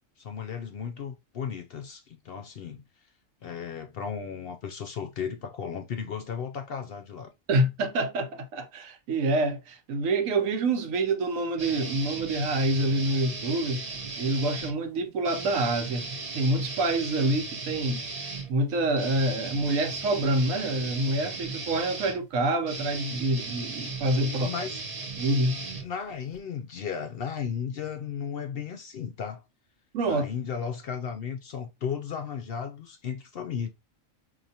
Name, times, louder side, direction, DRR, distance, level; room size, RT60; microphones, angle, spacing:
voice 1, 0.0-2.8 3.4-7.3 24.2-24.8 25.8-29.4 30.1-33.7, left 7 dB, 65° left, 0.6 m, -35 dB
voice 2, 7.5-13.8 14.2-16.1 16.3-18.0 18.5-24.5 25.2-25.6 29.9-30.3, right 2 dB, 85° right, 1.2 m, -27 dB
sound 1, 11.6-14.7 15.2-26.4, right 4 dB, 35° right, 0.7 m, -37 dB
4.6 x 2.7 x 2.7 m
omnidirectional pair, 1.3 m